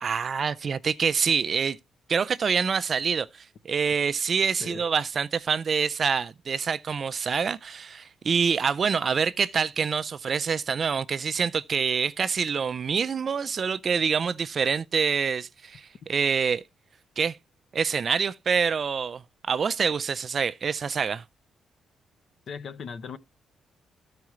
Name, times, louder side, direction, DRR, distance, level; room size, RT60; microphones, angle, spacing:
voice 1, 0.0-1.8 2.1-16.6 17.2-17.4 17.7-21.2, right 6 dB, 35° right, 0.4 m, -26 dB
voice 2, 22.5-23.2, left 6 dB, 50° left, 0.7 m, -38 dB
14.0 x 4.7 x 3.1 m
cardioid pair, 165°, 0 cm